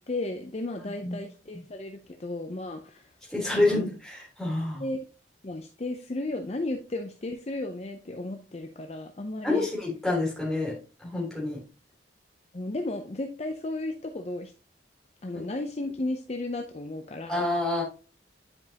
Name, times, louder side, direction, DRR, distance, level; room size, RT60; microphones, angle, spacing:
voice 1, 0.1-3.1 3.5-3.9 4.7-5.0 5.4-9.7 12.5-14.5 15.2-17.5, left 2 dB, 35° left, 5 dB, 0.5 m, -34 dB
voice 2, 3.3-4.8 9.4-10.7 11.0-11.6 15.3-15.5 17.3-17.8, left 2 dB, ahead, -4 dB, 3.5 m, -27 dB
9.6 x 5.3 x 2.9 m, 0.35 s
head